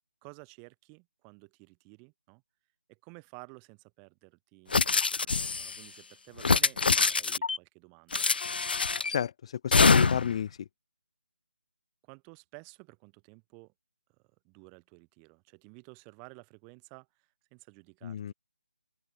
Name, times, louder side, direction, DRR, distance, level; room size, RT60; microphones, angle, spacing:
voice 1, 0.2-2.4 2.9-8.8 12.0-13.7 14.4-18.3, right 40 dB or more, 15° right, 3.6 m, -53 dB
sound 1, 4.7-5.8 6.4-7.6 8.1-9.2 9.7-10.4, left 4 dB, 60° left, 0.4 m, -24 dB
voice 2, 9.1-10.7 18.0-18.3, left 9 dB, 30° left, 0.9 m, -32 dB
open air
figure-of-eight pair, 150°, 6 cm